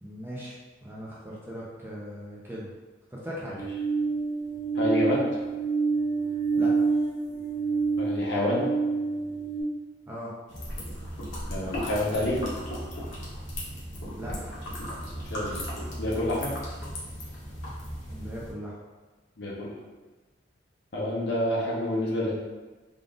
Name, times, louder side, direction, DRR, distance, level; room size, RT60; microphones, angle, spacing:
voice 1, 0.0-2.7 3.1-3.6 6.5-6.7 10.1-10.3 14.2-14.6 18.1-18.7, equal, 10° right, -6 dB, 0.6 m, -39 dB
sound 1, 3.6-9.6, right 4 dB, 30° right, 1.1 m, -27 dB
voice 2, 4.8-5.3 8.0-8.7 11.5-12.4 15.3-15.6 16.0-16.5 19.4-19.7 20.9-22.3, left 1 dB, 60° left, -4 dB, 0.8 m, -27 dB
sound 2, 10.5-18.5, equal, 80° left, 1.1 m, -36 dB
3.8 x 2.5 x 3.5 m, 1.2 s
head